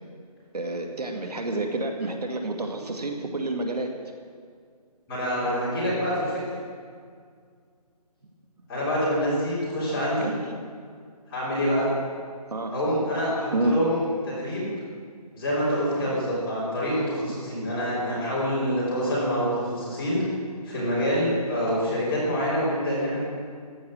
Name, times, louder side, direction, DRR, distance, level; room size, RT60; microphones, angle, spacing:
voice 1, 0.5-3.9 10.2-10.4 12.5-12.7 13.5-13.8 16.1-16.2, right 2 dB, 75° right, 3 dB, 2.2 m, -29 dB
voice 2, 5.1-6.4 8.7-10.3 11.3-11.9 12.7-14.7 15.3-20.3 20.6-23.2, equal, 10° left, -11 dB, 3.4 m, -26 dB
15.0 x 10.5 x 6.4 m, 2.1 s
hypercardioid pair, 175°, 20 cm